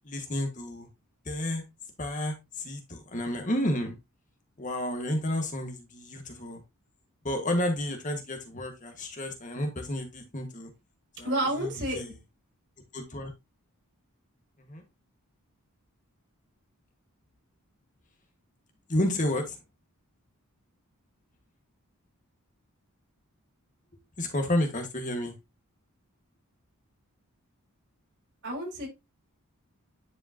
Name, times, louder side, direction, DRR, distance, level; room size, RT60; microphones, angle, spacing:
voice 1, 0.0-0.9 1.2-1.6 2.0-3.9 4.6-6.6 7.2-10.7 11.2-12.1 12.9-13.3 14.6-14.8 18.9-19.6 24.2-25.3, left 1 dB, 35° left, 1.5 m, -31 dB
voice 2, 11.2-12.2 28.4-28.9, right 1 dB, 55° right, 5.5 m, -30 dB
10.0 x 5.1 x 2.8 m
head